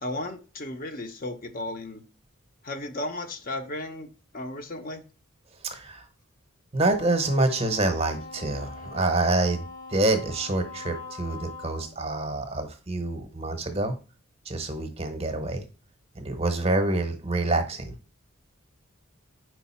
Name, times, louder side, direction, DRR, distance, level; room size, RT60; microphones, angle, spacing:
voice 1, 0.0-2.0 2.6-4.1 4.3-5.0, left 1 dB, 40° left, 6 dB, 0.7 m, -34 dB
voice 2, 5.6-6.0 6.7-9.6 9.9-14.0 14.5-15.6 16.2-17.9, right 2 dB, 25° right, 7 dB, 0.8 m, -26 dB
Wind instrument woodwind instrument, 6.9-12.0, left 4 dB, 85° left, 2.0 m, -42 dB
4.8 x 4.6 x 4.2 m, 0.34 s
head